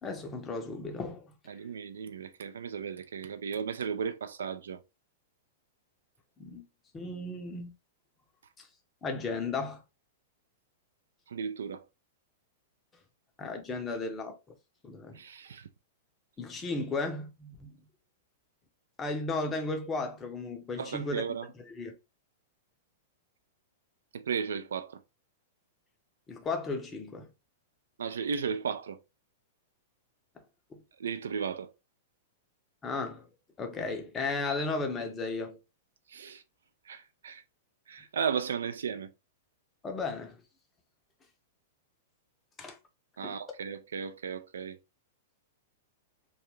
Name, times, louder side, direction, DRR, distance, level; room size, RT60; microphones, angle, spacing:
voice 1, 0.0-1.3 6.4-6.6 6.9-7.7 8.6-8.7 9.0-9.8 13.4-14.4 14.8-15.2 16.4-17.8 19.0-21.2 21.7-21.9 26.3-27.3 30.7-30.8 32.8-33.3 33.6-35.6 39.8-40.4 42.6-42.8 43.2-43.4, left 3 dB, 20° left, 0.6 m, -35 dB
voice 2, 1.5-4.8 11.3-11.8 15.1-15.7 20.8-21.5 24.1-25.0 28.0-29.0 31.0-31.7 36.1-36.4 36.9-37.4 37.9-39.1 43.2-44.8, right 6 dB, 65° right, 0.3 m, -35 dB
2.5 x 2.2 x 3.0 m
figure-of-eight pair, 100°, 0 cm